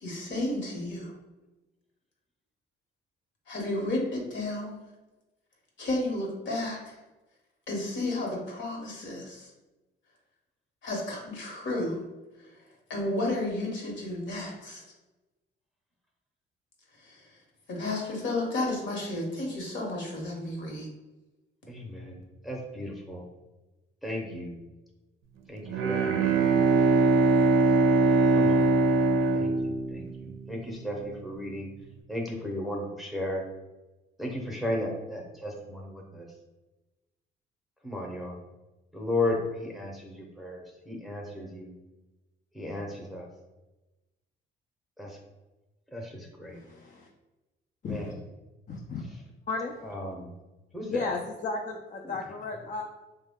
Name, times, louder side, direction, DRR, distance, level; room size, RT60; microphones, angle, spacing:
voice 1, 0.0-1.1 3.5-4.8 5.8-6.8 7.7-9.5 10.8-12.0 12.9-14.8 17.7-20.9, left 2 dB, 65° left, -1 dB, 1.1 m, -32 dB
voice 2, 21.7-23.3 24.0-24.6 25.5-26.6 28.3-28.7 29.3-31.7 32.1-33.4 34.2-36.3 37.8-38.4 38.9-41.7 42.5-43.3 45.0-45.2 45.9-46.6 47.8-48.2 49.8-50.3 50.7-51.1 52.0-52.2, left 1 dB, ahead, -1 dB, 0.7 m, -35 dB
Bowed string instrument, 25.6-30.5, right 3 dB, 90° right, 0.5 m, -22 dB
voice 3, 46.5-47.1 47.8-48.0 48.7-49.0 49.5-49.7 50.9-52.8, left 4 dB, 40° left, 1 dB, 0.4 m, -34 dB
3.3 x 2.2 x 3.5 m, 1.1 s
cardioid pair, 90°, 20 cm